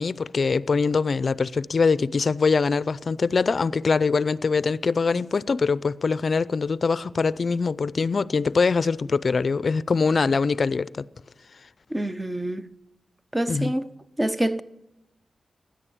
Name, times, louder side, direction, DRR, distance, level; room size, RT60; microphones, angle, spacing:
voice 1, 0.0-11.1 13.5-13.7, left 4 dB, 55° left, 0.4 m, -23 dB
voice 2, 11.9-12.7 13.3-13.9 14.2-14.6, right 1 dB, 15° right, 0.6 m, -26 dB
16.0 x 10.5 x 8.4 m
cardioid pair, 75°, 0 cm